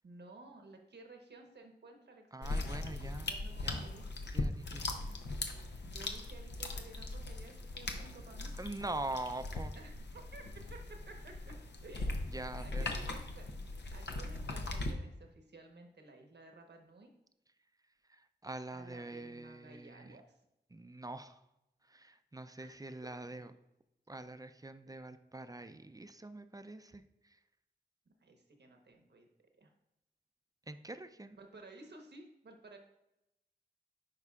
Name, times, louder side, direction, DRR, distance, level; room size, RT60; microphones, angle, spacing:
voice 1, 0.0-4.1 5.8-8.5 9.7-11.6 11.8-12.2 12.6-13.5 13.9-17.1 18.7-20.2 22.6-22.8 28.1-29.3 29.6-29.7 31.4-32.8, right 2 dB, 75° right, 3 dB, 1.1 m, -55 dB
voice 2, 2.3-3.9 4.3-5.2 8.6-9.7 12.3-12.9 18.1-20.2 20.7-21.4 21.9-23.5 24.1-27.0 30.7-31.4, right 2 dB, 20° right, 10 dB, 0.4 m, -44 dB
sound 1, 2.4-14.9, left 2 dB, 85° left, 0.7 m, -40 dB
11.0 x 4.9 x 2.4 m, 0.88 s
cardioid pair, 50°, 17 cm